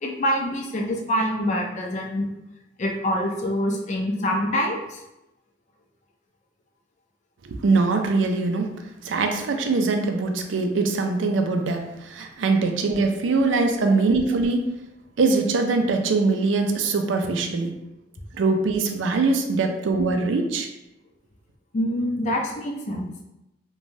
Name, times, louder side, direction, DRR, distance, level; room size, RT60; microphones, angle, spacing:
voice 1, 0.0-2.3 2.8-5.0 21.7-23.2, equal, 40° left, 1 dB, 0.4 m, -25 dB
voice 2, 7.4-8.7 9.0-14.7 15.2-17.8 18.3-20.7, right 3 dB, 75° right, 5 dB, 0.4 m, -22 dB
2.6 x 2.2 x 3.1 m, 0.91 s
head